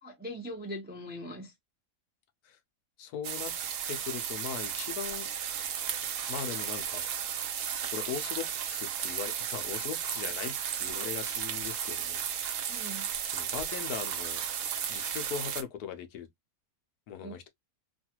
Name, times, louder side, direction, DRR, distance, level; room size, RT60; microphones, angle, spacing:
voice 1, 0.0-1.5 12.7-13.1 17.2-17.3, equal, 15° right, 0.4 m, -41 dB
voice 2, 3.0-3.5 3.8-5.3 6.3-7.1 7.9-12.4 13.2-14.4 14.9-16.3 17.1-17.5, left 8 dB, 80° left, 1.2 m, -39 dB
sound 1, 3.2-15.6, right 8 dB, 65° right, 0.9 m, -34 dB
3.1 x 2.3 x 2.8 m
omnidirectional pair, 1.6 m